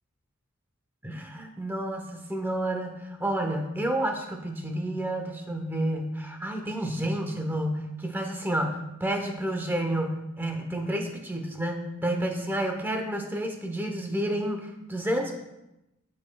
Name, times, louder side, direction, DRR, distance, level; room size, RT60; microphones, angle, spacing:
voice 1, 1.0-15.4, right 1 dB, 10° right, 4 dB, 0.8 m, -30 dB
14.5 x 5.4 x 2.3 m, 0.92 s
head